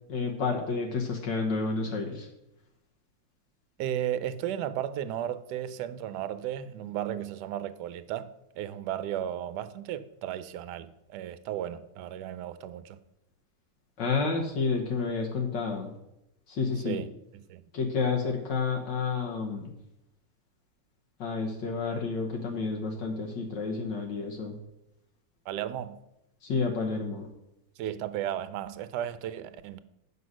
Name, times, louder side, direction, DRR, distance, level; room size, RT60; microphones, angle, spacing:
voice 1, 0.1-2.3 14.0-15.9 16.5-17.0 17.7-19.7 21.2-24.6 26.4-27.3, left 4 dB, 75° left, 1.7 m, -30 dB
voice 2, 3.8-8.3 8.6-13.0 16.8-17.1 17.3-17.6 25.5-26.0 27.8-29.8, right 11 dB, 75° right, 1.1 m, -34 dB
7.8 x 5.4 x 6.2 m
omnidirectional pair, 2.0 m